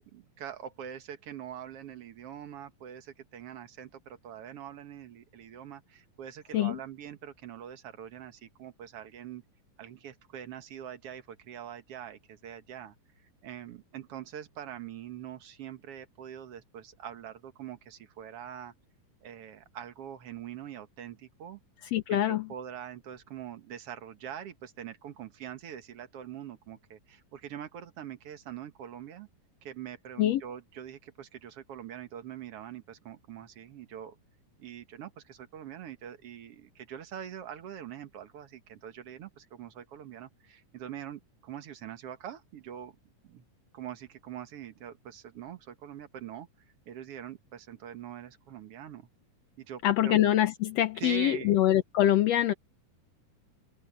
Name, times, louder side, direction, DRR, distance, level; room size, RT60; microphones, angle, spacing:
voice 1, 0.0-9.4 9.8-13.0 13.4-18.7 19.2-21.6 22.1-29.3 29.6-34.2 34.6-43.0 43.2-43.5 43.7-46.5 46.9-49.1 49.6-50.2 51.0-51.6, right 9 dB, 55° right, 1.9 m, -43 dB
voice 2, 21.9-22.4 30.2-30.4 49.8-52.5, left 12 dB, 80° left, 1.5 m, -24 dB
open air
omnidirectional pair, 3.9 m